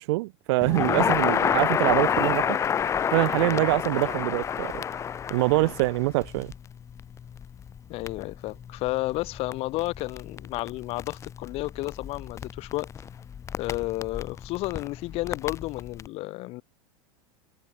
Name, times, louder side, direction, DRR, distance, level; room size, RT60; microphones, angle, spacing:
voice 1, 0.0-2.6 3.1-4.8 5.3-6.5, right 23 dB, 55° right, 0.9 m, -24 dB
Crackle, 0.6-16.1, left 8 dB, 15° left, 1.9 m, -30 dB
voice 2, 3.3-3.7 5.5-5.8 7.9-12.9 13.6-16.6, left 20 dB, 35° left, 3.4 m, -32 dB
supercardioid pair, 165°, 17 cm